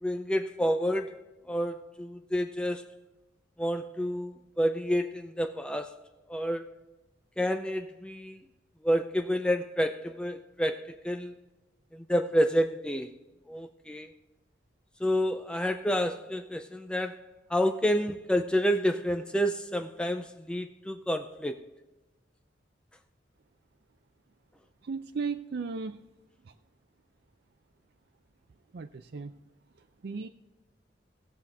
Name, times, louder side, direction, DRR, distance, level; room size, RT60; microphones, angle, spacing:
voice 1, 0.0-2.9 3.6-6.0 6.3-6.7 7.4-8.4 8.8-11.4 11.9-13.1 13.5-14.1 15.0-21.6, equal, 5° left, 0.4 m, -29 dB
voice 2, 24.8-26.0 26.4-26.5 28.7-29.3 30.0-30.3, right 5 dB, 60° right, 0.4 m, -35 dB
19.0 x 7.2 x 3.4 m
head